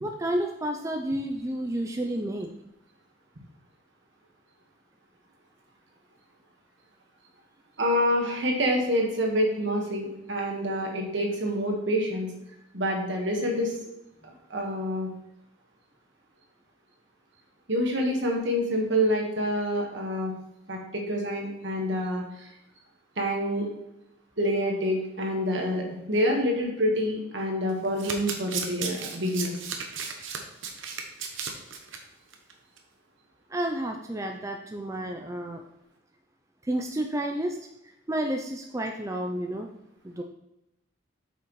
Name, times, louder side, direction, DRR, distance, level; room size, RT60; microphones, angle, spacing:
voice 1, 0.0-2.5 33.5-35.6 36.6-37.6 38.1-39.7 40.0-40.2, right 1 dB, 15° right, 3 dB, 0.4 m, -30 dB
voice 2, 7.8-12.3 12.7-13.7 14.2-15.1 17.7-20.3 20.7-22.5 23.2-23.7 24.4-29.5, equal, 65° right, 1 dB, 1.5 m, -27 dB
Domestic sounds home sounds, 27.7-32.0 32.3-32.5 32.8-32.9, right 6 dB, 85° right, 1.0 m, -35 dB
8.1 x 5.8 x 3.1 m, 0.87 s
head